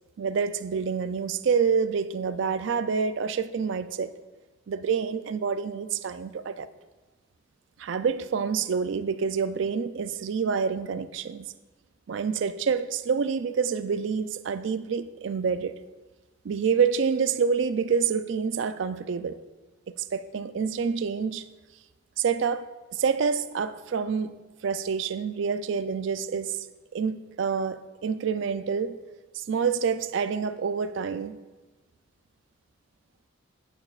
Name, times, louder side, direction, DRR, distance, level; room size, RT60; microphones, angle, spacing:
voice 1, 0.2-4.1 4.7-6.7 7.8-11.5 12.1-15.7 16.4-19.4 20.1-21.5 22.2-24.4 24.6-26.7 26.9-29.0 29.3-31.4, right 6 dB, 65° right, 0.4 m, -27 dB
10.5 x 8.8 x 2.4 m
head